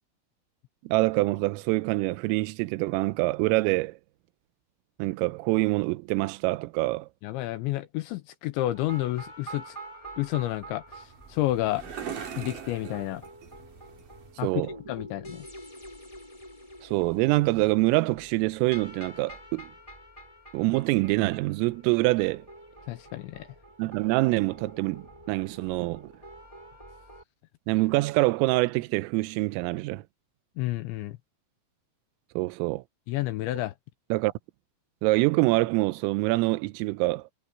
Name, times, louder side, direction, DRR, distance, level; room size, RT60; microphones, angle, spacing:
voice 1, 0.8-4.0 5.0-7.1 14.4-14.8 16.8-19.7 20.5-22.4 23.8-26.1 27.7-30.0 32.4-32.8 34.1-34.3 35.0-37.2, right 22 dB, 85° right, 3.4 m, -25 dB
voice 2, 7.2-9.8 10.2-11.8 12.4-13.3 14.4-14.6 14.9-15.5 22.9-23.5 30.6-31.2 33.1-33.7, left 16 dB, 80° left, 2.8 m, -30 dB
sound 1, 8.7-27.2, right 1 dB, 10° left, 2.9 m, -47 dB
sound 2, 10.9-14.5, right 8 dB, 45° right, 4.4 m, -41 dB
omnidirectional pair, 5.9 m